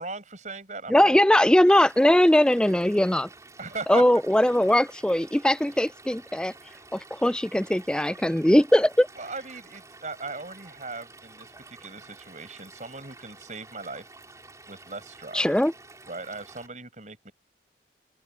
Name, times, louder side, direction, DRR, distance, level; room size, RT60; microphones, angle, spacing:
voice 1, 0.0-1.1 3.6-4.0 9.2-14.1 14.7-15.5 16.1-17.3, right 3 dB, 40° right, 6.8 m, -38 dB
voice 2, 0.9-3.3 3.9-6.5 6.9-9.1 15.3-15.7, left 1 dB, 5° left, 0.3 m, -20 dB
Stream / Liquid, 1.7-16.7, right 3 dB, 20° right, 5.9 m, -50 dB
head